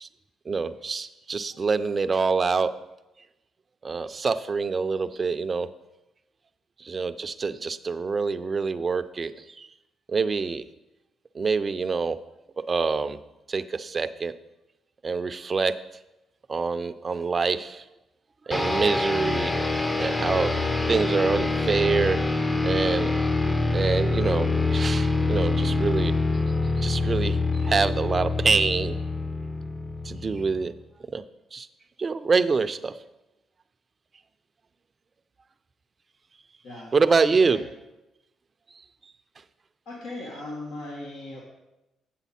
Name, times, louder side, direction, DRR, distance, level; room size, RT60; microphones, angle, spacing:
voice 1, 0.5-2.7 3.8-5.7 6.8-9.7 10.1-10.6 11.3-12.2 12.7-13.2 13.5-14.3 15.0-15.7 16.5-17.8 18.5-19.6 20.0-20.5 20.9-22.2 22.6-23.1 23.4-26.1 26.8-29.0 30.0-30.7 31.1-31.2 31.5-31.7 32.0-33.0 36.9-37.6, right 4 dB, 35° right, 11 dB, 0.5 m, -26 dB
sound 1, 18.5-30.7, left 3 dB, 20° left, 0.7 m, -25 dB
voice 2, 36.6-37.6 39.9-41.4, left 2 dB, 90° left, -4 dB, 1.7 m, -38 dB
8.2 x 7.6 x 4.2 m, 0.95 s
cardioid pair, 80°, 0 cm